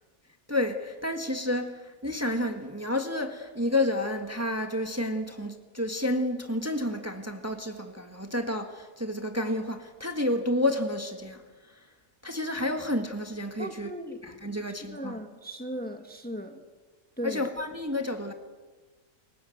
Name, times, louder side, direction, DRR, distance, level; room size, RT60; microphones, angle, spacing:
voice 1, 0.5-11.4 12.2-13.9 14.2-15.2 17.2-18.3, left 1 dB, 10° right, 5 dB, 1.6 m, -30 dB
voice 2, 13.6-14.2 14.8-16.6 17.2-17.4, equal, 5° left, 6 dB, 1.5 m, -37 dB
29.5 x 17.5 x 7.9 m, 1.3 s
omnidirectional pair, 1.5 m